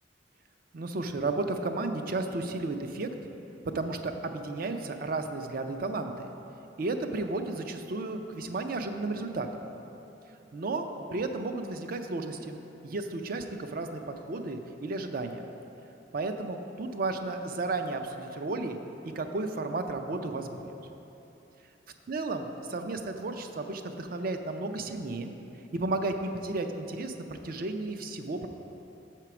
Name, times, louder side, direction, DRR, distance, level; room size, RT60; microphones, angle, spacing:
voice 1, 0.7-3.1 3.6-6.3 6.8-9.6 10.5-12.6 12.8-15.5 16.1-18.8 19.1-20.7 22.1-25.3 25.7-28.5, right 2 dB, 55° right, 6 dB, 0.5 m, -33 dB
6.8 x 4.4 x 5.9 m, 3.0 s
head